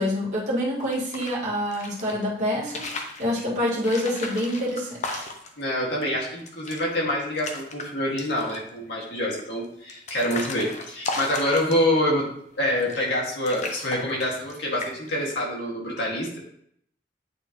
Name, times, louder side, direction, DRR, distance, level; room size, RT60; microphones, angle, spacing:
voice 1, 0.0-5.3, left 1 dB, 40° right, -8 dB, 2.1 m, -27 dB
sound 1, 0.8-2.1 2.6-3.2 3.8-5.6 6.0-6.1 6.4-6.9 7.2-7.9 8.2-8.7 9.4-12.1 12.8-13.2 13.5-14.5 14.8-15.2, left 3 dB, 40° left, 0.8 m, -35 dB
voice 2, 5.6-12.3 12.6-16.4, left 1 dB, 85° left, -4 dB, 2.2 m, -26 dB
8.8 x 3.9 x 3.1 m, 0.69 s
head